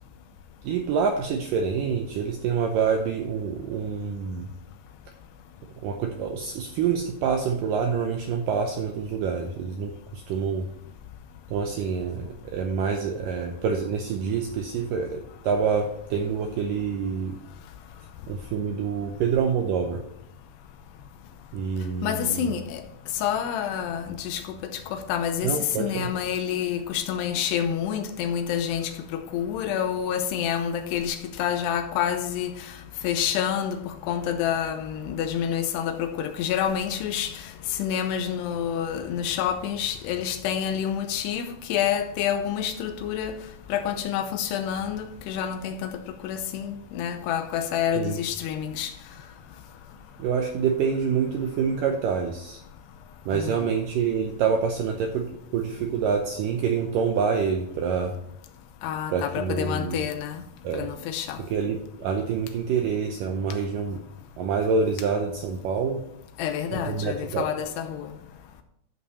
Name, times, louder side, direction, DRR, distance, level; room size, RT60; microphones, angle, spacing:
voice 1, 0.6-4.5 5.8-10.7 11.5-17.4 18.3-20.0 21.5-22.5 25.4-26.1 47.9-48.2 50.2-52.6 53.3-58.2 59.1-60.0 60.6-60.9 61.5-64.0 64.4-66.0 66.7-67.5, right 6 dB, 85° right, 1.9 m, -27 dB
voice 2, 22.0-22.8 23.2-24.4 24.7-32.7 33.0-43.4 43.7-45.9 46.2-48.9 53.3-53.7 58.8-60.4 60.7-61.4 66.4-68.1, left 9 dB, 90° left, 2.8 m, -28 dB
12.5 x 5.7 x 4.1 m
omnidirectional pair, 4.8 m